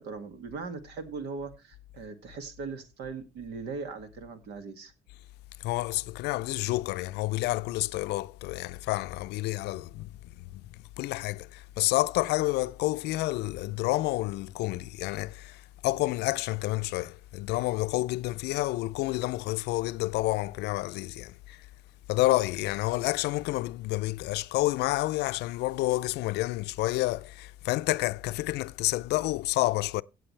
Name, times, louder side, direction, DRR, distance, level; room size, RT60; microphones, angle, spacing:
voice 1, 0.0-4.9, right 4 dB, 80° right, 2.0 m, -39 dB
voice 2, 5.6-10.1 10.5-10.6 11.0-21.6 22.1-30.0, left 19 dB, 80° left, 0.5 m, -29 dB
16.5 x 7.7 x 3.2 m
cardioid pair, 110°, 17 cm